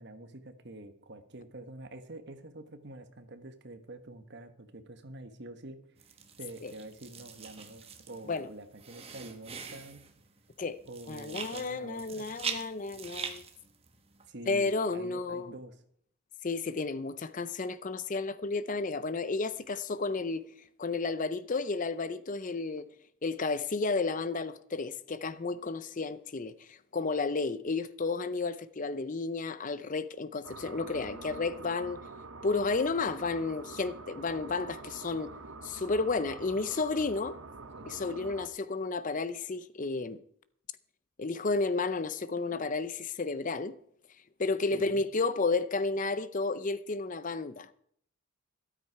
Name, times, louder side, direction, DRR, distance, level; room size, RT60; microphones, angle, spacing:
voice 1, 0.0-5.8 6.4-10.1 10.9-12.3 14.3-15.8 37.8-37.9 44.7-45.1, right 2 dB, 50° right, 1.2 m, -47 dB
sound 1, 6.0-14.3, right 6 dB, 25° right, 1.2 m, -43 dB
voice 2, 11.1-13.4 14.5-15.5 16.4-20.4 20.8-22.9 23.2-32.0 32.4-35.3 35.6-37.4 37.9-40.2 41.2-43.8 44.4-47.7, left 3 dB, 35° left, 0.5 m, -32 dB
sound 2, 30.4-38.5, right 3 dB, 65° right, 0.9 m, -46 dB
13.0 x 12.5 x 4.6 m
head